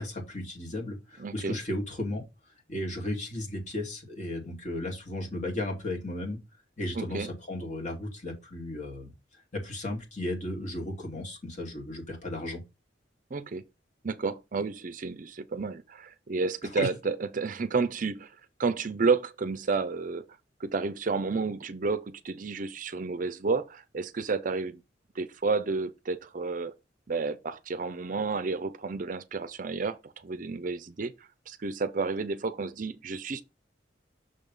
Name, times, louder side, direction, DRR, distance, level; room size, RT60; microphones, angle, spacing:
voice 1, 0.0-2.2 2.7-6.4 6.8-9.1 9.5-12.6 16.8-16.9, left 1 dB, 40° left, 2.4 m, -34 dB
voice 2, 1.2-1.6 7.0-7.3 13.3-13.6 14.0-18.3 18.6-20.3 20.6-24.8 25.2-26.7 27.1-31.1 31.5-33.4, right 4 dB, 45° right, 0.5 m, -31 dB
6.5 x 3.5 x 5.4 m
head